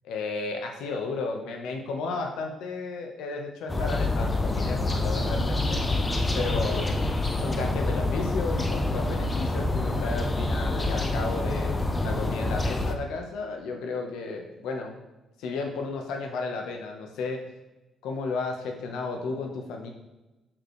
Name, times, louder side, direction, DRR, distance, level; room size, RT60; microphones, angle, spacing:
voice 1, 0.0-5.8 6.3-7.0 7.4-11.8 12.0-15.0 15.4-17.4 18.0-19.9, left 3 dB, 90° left, 3 dB, 1.1 m, -33 dB
sound 1, 3.7-12.9, left 2 dB, 25° left, 0.7 m, -27 dB
6.2 x 6.0 x 3.2 m, 1.1 s
cardioid pair, 90°, 0 cm